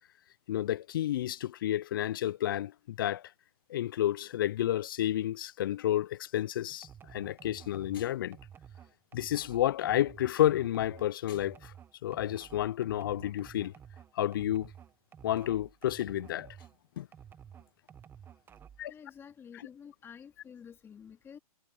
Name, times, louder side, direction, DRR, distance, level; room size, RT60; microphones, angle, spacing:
voice 1, 0.5-3.2 3.7-8.4 9.1-11.7 12.0-13.7 14.2-14.7 15.2-16.6 17.0-17.1 18.8-18.9, left 12 dB, 35° left, 0.4 m, -30 dB
sound 1, 6.8-16.8 17.1-18.9, right 8 dB, 10° right, 1.1 m, -52 dB
voice 2, 18.9-21.4, left 7 dB, 10° left, 2.5 m, -50 dB
hypercardioid pair, 145°, 20 cm